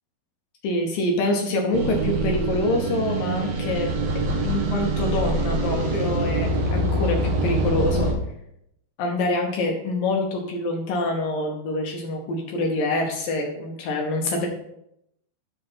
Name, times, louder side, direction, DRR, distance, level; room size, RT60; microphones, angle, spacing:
voice 1, 0.6-3.9 4.4-8.1 9.0-14.5, left 2 dB, 70° left, 1 dB, 2.5 m, -26 dB
sound 1, 1.7-8.1, right 2 dB, 65° right, 3.2 m, -24 dB
9.8 x 5.0 x 5.8 m, 0.79 s
omnidirectional pair, 4.8 m